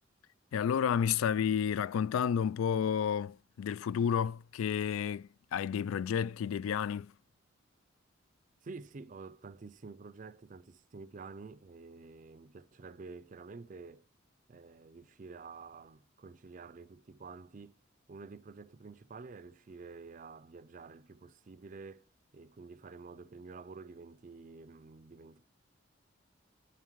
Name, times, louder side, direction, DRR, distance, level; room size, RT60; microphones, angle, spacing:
voice 1, 0.5-7.1, left 8 dB, 90° left, 0.3 m, -31 dB
voice 2, 8.6-14.1 14.5-17.8 18.1-25.5, right 4 dB, 40° right, 0.4 m, -49 dB
8.5 x 7.3 x 3.0 m
head